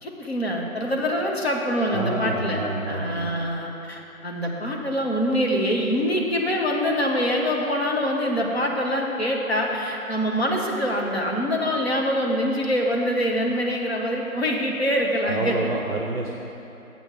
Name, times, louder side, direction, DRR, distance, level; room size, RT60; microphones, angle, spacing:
voice 1, 0.0-15.7, equal, 45° left, -1 dB, 1.1 m, -25 dB
voice 2, 1.9-3.3 15.3-16.3, right 3 dB, 45° right, 1 dB, 0.6 m, -28 dB
6.9 x 5.9 x 6.9 m, 2.9 s
figure-of-eight pair, 170°, 43 cm